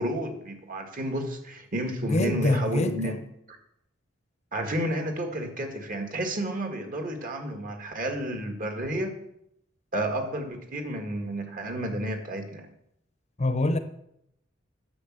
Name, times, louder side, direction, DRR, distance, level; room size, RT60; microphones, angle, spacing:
voice 1, 0.0-3.2 4.5-9.1 9.9-12.7, right 1 dB, 45° right, 1.8 m, -31 dB
voice 2, 2.0-3.2 13.4-13.8, left 2 dB, 35° left, 0.7 m, -25 dB
9.9 x 6.1 x 7.5 m
head